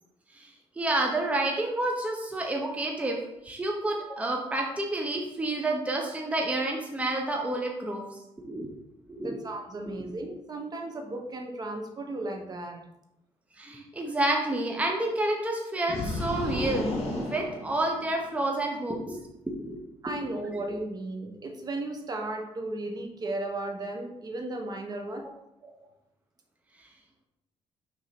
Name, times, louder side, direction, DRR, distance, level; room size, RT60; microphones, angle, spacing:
voice 1, 0.3-3.2 3.4-8.0 8.4-8.7 9.1-9.4 13.6-19.2 19.6-19.8 20.2-20.3, right 2 dB, 10° right, 0 dB, 0.9 m, -29 dB
voice 2, 9.2-12.8 20.0-25.2 25.6-25.9, right 2 dB, 35° right, 3 dB, 1.1 m, -35 dB
sound 1, 15.9-18.4, left 2 dB, 60° left, 2.3 m, -33 dB
6.2 x 3.7 x 5.9 m, 0.83 s
cardioid pair, 135°, 12 cm